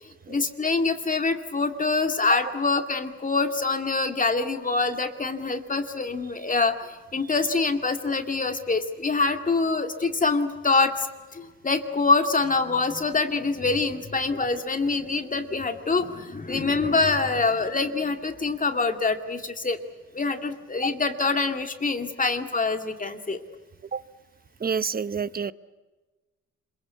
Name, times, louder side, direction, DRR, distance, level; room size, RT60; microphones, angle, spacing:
voice 1, 0.3-11.1 11.3-19.8 20.1-23.4, left 3 dB, 25° left, 6 dB, 2.3 m, -25 dB
voice 2, 24.6-25.5, right 6 dB, 30° right, 15 dB, 1.0 m, -28 dB
26.5 x 22.5 x 8.3 m, 1.2 s
cardioid pair, 90°, 30 cm